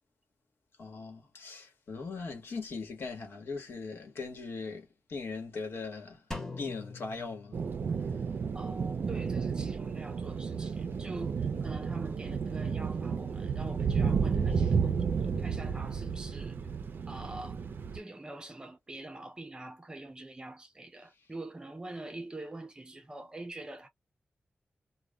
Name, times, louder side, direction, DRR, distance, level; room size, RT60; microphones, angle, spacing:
voice 1, 0.8-6.2 6.6-7.6, left 4 dB, 85° left, 1.0 m, -40 dB
Drum, 6.3-8.2, left 3 dB, 10° left, 0.8 m, -43 dB
sound 1, 7.5-18.0, right 6 dB, 60° right, 0.4 m, -32 dB
voice 2, 8.5-16.6 17.1-17.6 17.9-23.9, right 2 dB, 20° right, 0.6 m, -45 dB
2.1 x 2.0 x 3.5 m
wide cardioid pair, 145°, 4 cm